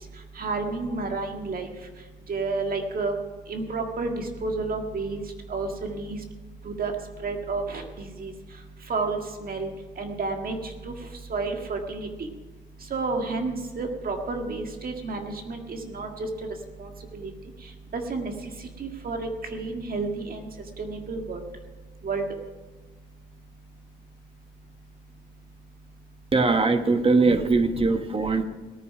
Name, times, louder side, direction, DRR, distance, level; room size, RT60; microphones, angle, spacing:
voice 1, 0.4-1.7 2.3-3.2 3.5-5.2 5.5-6.2 6.7-6.9 7.2-8.3 8.9-9.7 10.0-10.6 10.9-11.0 11.3-12.1 12.9-16.3 16.8-16.9 17.1-17.3 17.9-18.3 18.8-20.5 20.8-21.4 22.0-22.2, right 3 dB, 45° right, 3 dB, 1.8 m, -30 dB
voice 2, 26.3-28.4, right 3 dB, 30° right, 8 dB, 1.3 m, -21 dB
17.5 x 9.4 x 5.9 m, 1.2 s
cardioid pair, 90°, 20 cm